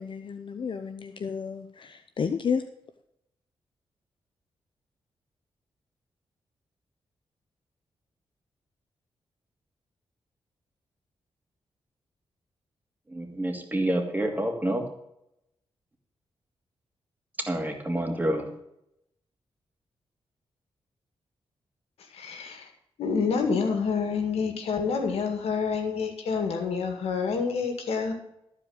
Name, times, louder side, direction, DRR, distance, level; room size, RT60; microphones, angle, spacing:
voice 1, 0.0-2.6, left 6 dB, 55° left, 9 dB, 0.7 m, -31 dB
voice 2, 13.1-14.8 17.5-18.5, right 1 dB, 15° right, 3 dB, 2.6 m, -28 dB
voice 3, 22.1-22.7 23.0-28.1, left 5 dB, 90° left, 5 dB, 2.0 m, -28 dB
13.5 x 4.9 x 8.7 m, 0.79 s
cardioid pair, 70°, 10 cm